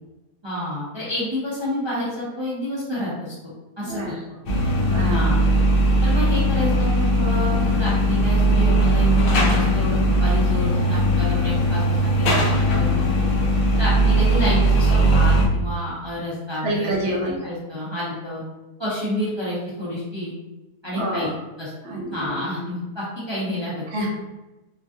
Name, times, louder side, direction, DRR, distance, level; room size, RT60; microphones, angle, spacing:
voice 1, 0.4-4.2 4.6-5.4 6.0-13.1 13.8-16.9 17.4-18.4 18.8-20.3 20.8-21.3 21.6-21.7 22.1-23.8, equal, 45° right, -8 dB, 0.3 m, -29 dB
voice 2, 3.8-4.2 4.9-5.3 16.6-17.4 21.0-21.3 21.8-22.4 23.9-24.1, right 1 dB, 60° right, -1 dB, 0.8 m, -27 dB
sound 1, 4.5-15.5, equal, 85° left, 0.5 m, -19 dB
3.0 x 2.4 x 2.6 m, 1.1 s
omnidirectional pair, 1.7 m